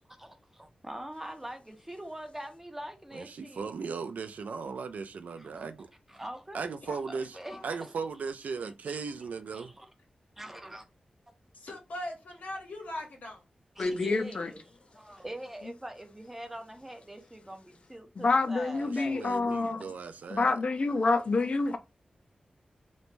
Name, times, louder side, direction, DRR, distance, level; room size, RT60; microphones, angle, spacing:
voice 1, 0.2-3.7 5.4-6.6 7.3-7.9 8.9-9.0 9.5-9.9 10.4-10.8 13.8-19.5, right 1 dB, 10° right, 0.5 m, -43 dB
voice 2, 3.1-5.9 6.5-7.3 7.6-9.7 18.7-20.6, right 5 dB, 90° right, 0.3 m, -37 dB
voice 3, 6.8-7.7 11.5-13.4, left 1 dB, 85° left, 0.9 m, -41 dB
voice 4, 13.8-14.5 18.2-19.9 20.3-21.8, left 3 dB, 50° left, 0.4 m, -27 dB
3.0 x 2.2 x 2.5 m
wide cardioid pair, 130°, 3 cm